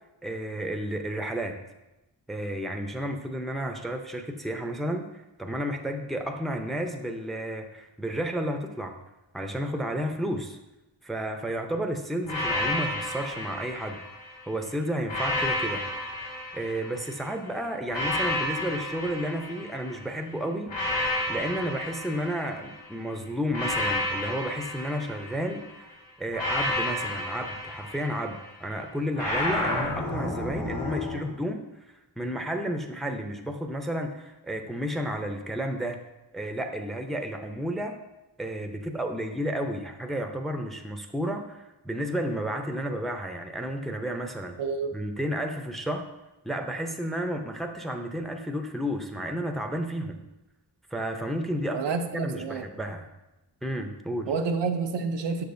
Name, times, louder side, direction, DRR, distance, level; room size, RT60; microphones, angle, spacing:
voice 1, 0.2-1.6 2.3-5.1 5.4-9.0 9.3-10.6 11.0-14.0 14.5-15.9 16.5-20.7 21.3-31.6 32.2-36.0 36.3-38.0 38.4-44.6 44.9-46.0 46.4-50.3 50.9-53.1 53.6-54.3, equal, ahead, 0.6 m, -32 dB
sound 1, 12.2-14.4 15.0-17.2 17.9-20.0 20.7-22.8 23.5-25.7 26.3-28.5 29.1-31.2, left 1 dB, 75° left, 2.2 m, -31 dB
voice 2, 44.6-44.9 51.7-52.6 54.3-55.4, right 4 dB, 75° right, 0.6 m, -29 dB
6.8 x 6.2 x 2.6 m
cardioid pair, 65°, 43 cm